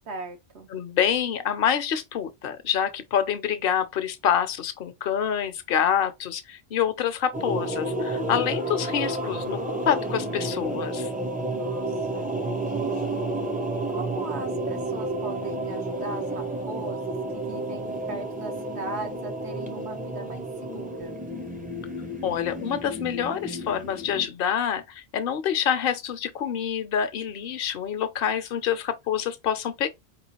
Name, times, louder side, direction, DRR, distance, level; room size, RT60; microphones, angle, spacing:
voice 1, 0.1-0.7 11.5-13.2 13.7-21.2, right 2 dB, 80° right, 1.2 m, -39 dB
voice 2, 0.7-11.1 22.2-29.9, left 8 dB, 60° left, 0.8 m, -27 dB
sound 1, 7.3-24.3, right 1 dB, 10° right, 0.5 m, -31 dB
4.6 x 3.1 x 2.9 m
omnidirectional pair, 1.1 m